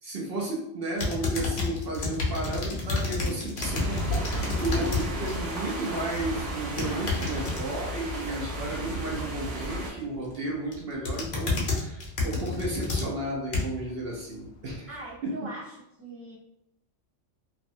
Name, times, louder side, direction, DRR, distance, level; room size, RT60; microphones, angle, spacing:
voice 1, 0.0-14.9 15.2-15.4, right 1 dB, 60° right, -3 dB, 0.7 m, -33 dB
sound 1, 1.0-5.1 5.4-5.8 6.6-7.6 10.0-10.4 10.7-13.9 14.4-14.5, left 3 dB, 50° left, 0.5 m, -30 dB
sound 2, 3.6-9.9, right 1 dB, 80° right, 1.0 m, -33 dB
Gurgling / Toilet flush, 4.1-8.1, left 1 dB, 40° right, 0.9 m, -42 dB
voice 2, 14.9-16.4, right 1 dB, 10° right, -8 dB, 0.9 m, -41 dB
2.5 x 2.1 x 2.6 m, 0.84 s
omnidirectional pair, 1.2 m